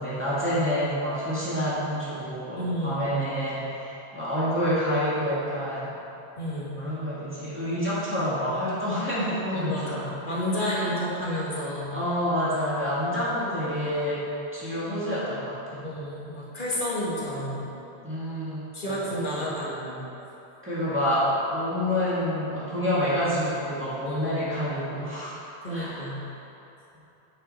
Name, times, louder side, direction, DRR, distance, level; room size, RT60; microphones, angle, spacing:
voice 1, 0.0-5.9 6.8-10.2 10.6-10.9 11.9-14.2 14.5-15.9 18.0-19.5 20.6-25.4 25.7-26.1, equal, 10° right, -11 dB, 2.0 m, -28 dB
voice 2, 2.5-3.0 6.4-6.8 9.4-12.0 15.8-17.7 18.7-20.0 24.1-24.4 25.6-26.2, equal, 50° left, -6 dB, 1.8 m, -30 dB
9.4 x 5.7 x 4.3 m, 3.0 s
omnidirectional pair, 1.1 m